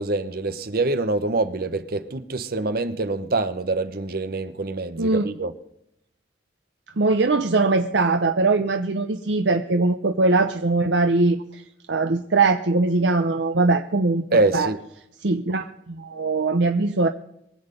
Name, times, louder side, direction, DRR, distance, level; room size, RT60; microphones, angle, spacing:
voice 1, 0.0-5.5 14.3-14.8, right 3 dB, 55° right, 1.1 m, -25 dB
voice 2, 5.0-5.3 7.0-11.6 11.9-14.2 14.5-14.7 15.2-17.1, right 3 dB, 80° right, 0.8 m, -21 dB
23.5 x 8.0 x 5.3 m
head